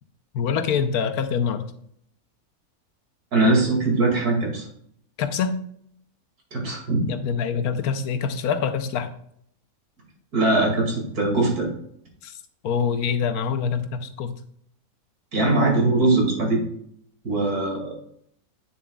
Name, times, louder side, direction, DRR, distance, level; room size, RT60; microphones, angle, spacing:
voice 1, 0.3-1.6 5.2-5.6 7.1-9.1 12.2-14.3, left 6 dB, 80° left, 9 dB, 1.2 m, -25 dB
voice 2, 3.3-4.7 6.5-7.1 10.3-11.7 15.3-16.6 17.2-18.0, right 2 dB, 80° right, -1 dB, 2.8 m, -21 dB
8.7 x 7.1 x 2.3 m, 0.68 s
omnidirectional pair, 1.6 m